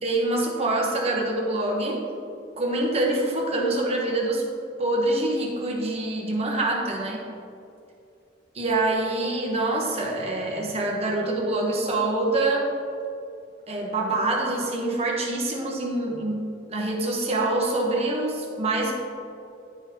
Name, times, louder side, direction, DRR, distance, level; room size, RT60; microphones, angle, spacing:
voice 1, 0.0-2.0 2.6-4.5 4.8-7.3 8.5-12.7 13.7-18.9, right 2 dB, 35° right, -1 dB, 0.9 m, -25 dB
10.5 x 3.9 x 2.8 m, 2.6 s
head